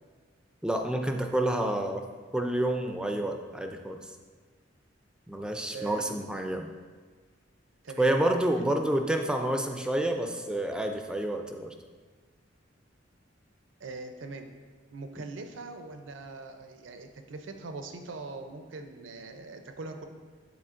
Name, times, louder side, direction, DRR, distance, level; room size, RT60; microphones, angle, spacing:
voice 1, 0.6-2.0 2.3-4.0 5.3-6.7 8.0-11.7, right 1 dB, 5° right, 4 dB, 0.4 m, -28 dB
voice 2, 5.7-6.2 7.8-8.1 8.5-8.9 13.8-14.5 14.9-20.0, right 3 dB, 75° right, 6 dB, 0.6 m, -42 dB
10.0 x 3.8 x 2.5 m, 1.5 s
head